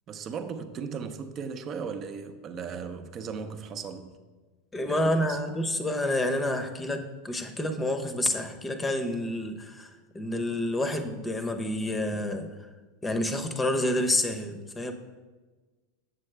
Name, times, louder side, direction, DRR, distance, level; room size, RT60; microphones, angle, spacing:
voice 1, 0.1-4.2 4.8-5.4, right 6 dB, 40° right, 0.7 m, -37 dB
voice 2, 4.7-9.9 10.1-12.5 13.0-14.9, left 1 dB, 15° left, 0.8 m, -28 dB
7.5 x 7.2 x 3.3 m
hypercardioid pair, 100°, 0 cm